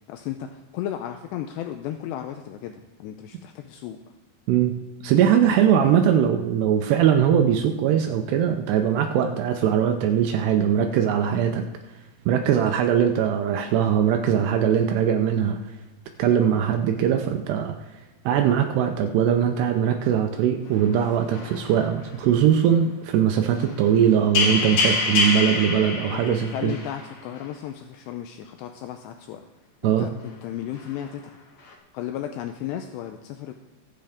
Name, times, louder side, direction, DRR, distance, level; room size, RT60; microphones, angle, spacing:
voice 1, 0.1-4.0 5.5-5.6 24.5-25.4 26.1-29.4 29.8-31.4 31.9-33.5, left 11 dB, 80° left, 5 dB, 2.6 m, -35 dB
voice 2, 5.0-11.6 12.3-15.6 16.2-17.7 18.3-26.7 29.8-30.1, right 9 dB, 80° right, 5 dB, 2.7 m, -21 dB
sound 1, 20.6-22.0 23.6-24.0 24.3-27.1 27.4-27.5 30.8-30.9 31.7-31.8, left 3 dB, 65° left, 1.5 m, -26 dB
22.0 x 7.6 x 3.5 m, 1.2 s
omnidirectional pair, 5.2 m